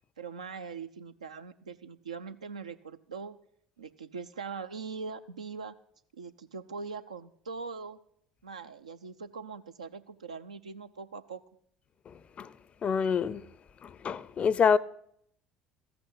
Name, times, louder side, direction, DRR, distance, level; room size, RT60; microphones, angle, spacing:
voice 1, 0.2-3.4 3.8-5.7 6.2-8.0 8.4-11.4, right 5 dB, 80° right, 0.5 m, -41 dB
voice 2, 12.8-13.4 13.8-14.8, left 6 dB, 35° left, 0.5 m, -26 dB
14.5 x 6.0 x 8.6 m
figure-of-eight pair, 60°, 4 cm